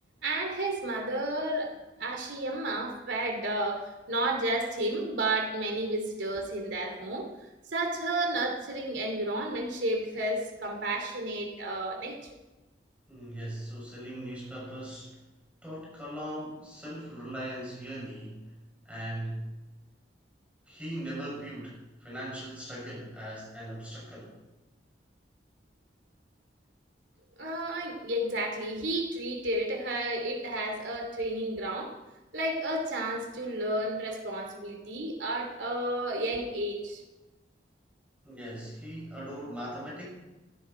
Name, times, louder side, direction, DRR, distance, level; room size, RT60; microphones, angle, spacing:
voice 1, 0.2-7.3 7.7-12.2 27.4-31.9 32.3-37.0, right 1 dB, 85° right, 2 dB, 3.0 m, -32 dB
voice 2, 13.1-15.2 15.6-18.5 18.8-19.5 20.7-24.4 38.2-40.1, right 1 dB, 5° right, -6 dB, 7.2 m, -39 dB
16.0 x 15.0 x 4.6 m, 1.1 s
head